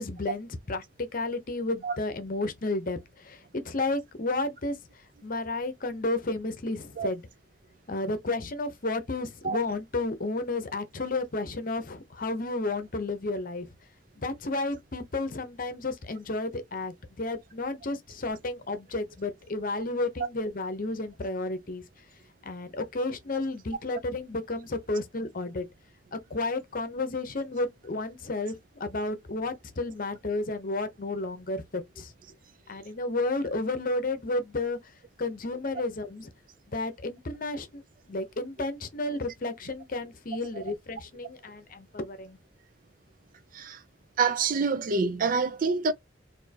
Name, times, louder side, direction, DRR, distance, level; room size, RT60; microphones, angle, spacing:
voice 1, 0.0-4.8 5.2-7.2 7.9-13.7 14.2-21.8 22.4-25.7 26.1-32.1 32.7-34.8 35.2-36.3 36.7-37.8 38.1-42.4, left 2 dB, 45° left, 0.8 m, -32 dB
voice 2, 44.2-45.9, right 4 dB, 45° right, 0.5 m, -26 dB
4.3 x 2.7 x 2.8 m
head